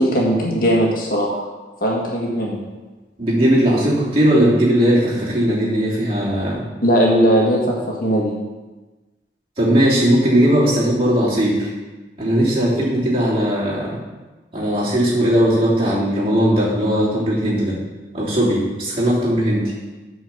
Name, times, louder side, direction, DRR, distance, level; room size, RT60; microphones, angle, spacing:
voice 1, 0.0-1.5 1.8-2.6 6.8-8.4, equal, 50° left, -2 dB, 1.8 m, -18 dB
voice 2, 3.2-6.6 9.6-11.7 12.2-14.0 14.5-17.8 18.1-19.7, equal, 30° right, -8 dB, 3.1 m, -18 dB
8.7 x 4.8 x 7.1 m, 1.2 s
head